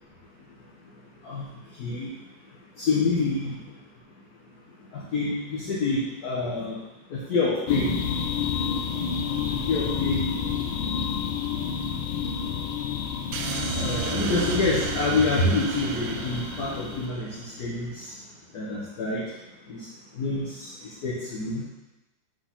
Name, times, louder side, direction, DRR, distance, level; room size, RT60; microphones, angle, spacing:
voice 1, 1.8-2.1 2.8-3.5 4.9-6.8 7.1-7.9 9.7-10.4 13.8-17.9 18.5-19.2 19.7-19.8 20.2-20.4 21.0-21.6, left 3 dB, 55° left, -5 dB, 1.3 m, -27 dB
sound 1, 7.7-17.1, left 7 dB, 75° left, 1.3 m, -30 dB
sound 2, 13.3-17.7, right 7 dB, 80° right, 1.4 m, -33 dB
5.1 x 4.1 x 5.7 m, 1.0 s
omnidirectional pair, 2.3 m